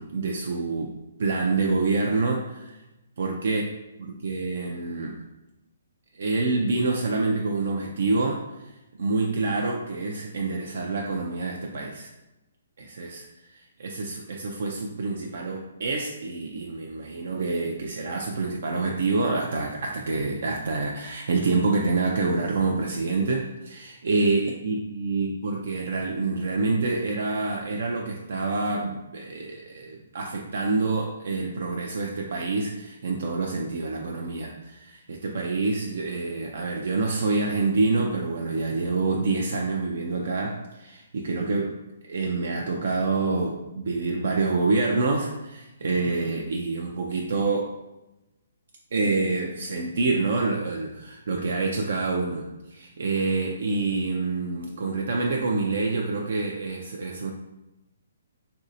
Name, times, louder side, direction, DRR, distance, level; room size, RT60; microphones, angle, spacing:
voice 1, 0.0-2.7 3.2-3.6 4.0-5.2 6.1-8.7 9.0-12.1 12.8-41.7 42.1-47.7 48.9-57.3, right 3 dB, 65° right, 1 dB, 0.3 m, -27 dB
3.1 x 2.6 x 2.6 m, 0.99 s
hypercardioid pair, 150°, 0 cm